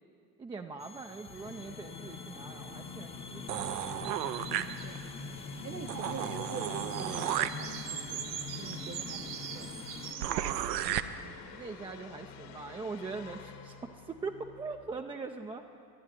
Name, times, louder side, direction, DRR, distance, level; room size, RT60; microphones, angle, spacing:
voice 1, 0.4-3.7 10.8-15.6, right 4 dB, 10° right, 3 dB, 0.4 m, -42 dB
sound 1, 0.8-10.1, left 4 dB, 10° left, 0.8 m, -45 dB
Musical instrument, 1.2-15.0, left 6 dB, 55° left, 1.4 m, -47 dB
sound 2, 3.5-5.2 5.6-5.7 5.9-11.0, right 11 dB, 80° right, 0.7 m, -35 dB
voice 2, 5.6-9.8, right 6 dB, 25° right, 10 dB, 1.0 m, -44 dB
11.5 x 11.0 x 9.4 m, 2.4 s
hypercardioid pair, 80°, 49 cm